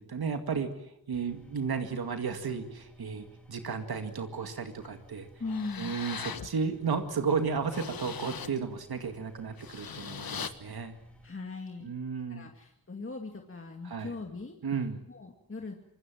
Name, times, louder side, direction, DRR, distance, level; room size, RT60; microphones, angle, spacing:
voice 1, 0.1-0.7 1.1-5.3 5.8-11.0 11.8-12.5 13.8-14.1 14.6-15.0, right 5 dB, 75° right, 6 dB, 2.2 m, -33 dB
sound 1, 1.1-11.2, equal, 5° left, 3.8 m, -56 dB
sound 2, 4.8-4.9 5.4-6.5 7.0-7.1 7.5-8.6 9.4-10.5, left 7 dB, 70° left, 1.4 m, -40 dB
voice 2, 5.4-6.0 11.2-11.9 12.3-14.6 15.1-15.7, left 3 dB, 35° left, 2 dB, 2.4 m, -39 dB
26.0 x 22.0 x 7.6 m, 0.82 s
wide cardioid pair, 80°, 37 cm